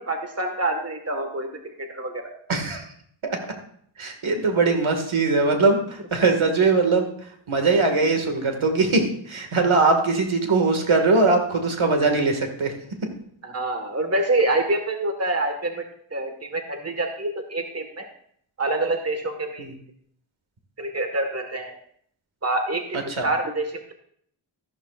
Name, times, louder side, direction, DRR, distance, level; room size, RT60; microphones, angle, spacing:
voice 1, 0.0-1.5 1.9-2.2 13.4-18.0 18.6-19.7 20.8-21.7 22.4-23.9, right 2 dB, 30° right, 4 dB, 1.6 m, -26 dB
voice 2, 2.5-2.8 3.2-3.4 4.0-7.1 7.5-12.7 19.6-19.7 23.2-23.3, right 3 dB, 75° right, 4 dB, 2.1 m, -21 dB
13.5 x 12.0 x 2.5 m, 0.64 s
wide cardioid pair, 65°, 49 cm